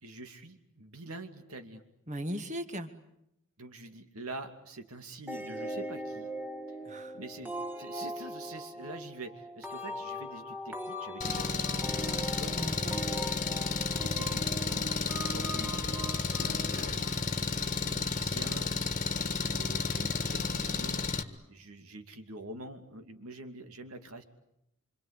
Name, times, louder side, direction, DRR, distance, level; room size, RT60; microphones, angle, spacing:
voice 1, 0.0-1.8 3.6-6.3 7.1-7.5 7.8-12.6 14.0-14.9 15.3-24.2, right 2 dB, 75° right, 7 dB, 2.6 m, -46 dB
voice 2, 2.1-2.9 6.9-7.2 12.6-13.0, equal, 35° right, 8 dB, 1.9 m, -38 dB
sound 1, 5.3-17.7, right 1 dB, 10° right, 1.6 m, -40 dB
Engine, 11.2-21.2, left 4 dB, 35° left, 1.6 m, -32 dB
26.5 x 26.0 x 8.3 m, 0.81 s
head